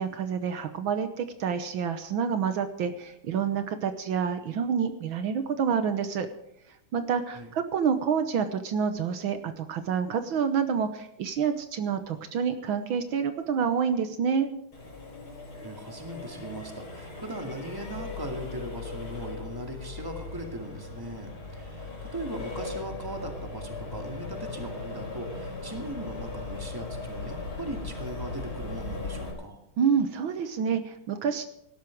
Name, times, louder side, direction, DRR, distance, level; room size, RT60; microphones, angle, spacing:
voice 1, 0.0-6.3 6.9-14.5 29.8-31.4, right 7 dB, 75° right, 9 dB, 1.7 m, -28 dB
Accelerating revving vroom, 14.7-29.3, left 3 dB, 80° left, 5.5 m, -38 dB
voice 2, 15.5-29.6, right 1 dB, 10° right, 4 dB, 2.2 m, -39 dB
18.0 x 12.5 x 4.7 m, 0.80 s
omnidirectional pair, 2.3 m